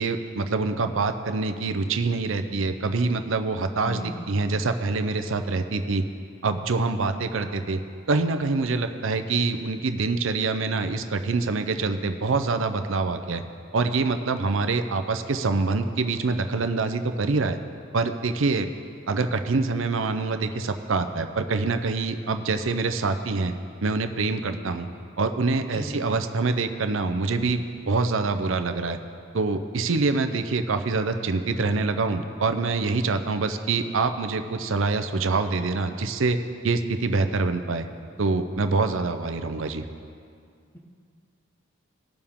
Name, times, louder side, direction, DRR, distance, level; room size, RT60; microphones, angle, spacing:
voice 1, 0.0-6.0 6.4-7.8 8.1-13.4 13.7-17.6 17.9-18.7 19.1-23.5 23.8-24.9 25.2-29.0 29.3-36.4 36.6-37.9 38.2-39.8, right 3 dB, 70° right, 8 dB, 0.6 m, -25 dB
voice 2, 3.8-4.4 25.7-26.0, equal, 10° left, 1 dB, 1.0 m, -37 dB
18.5 x 6.9 x 3.6 m, 2.3 s
head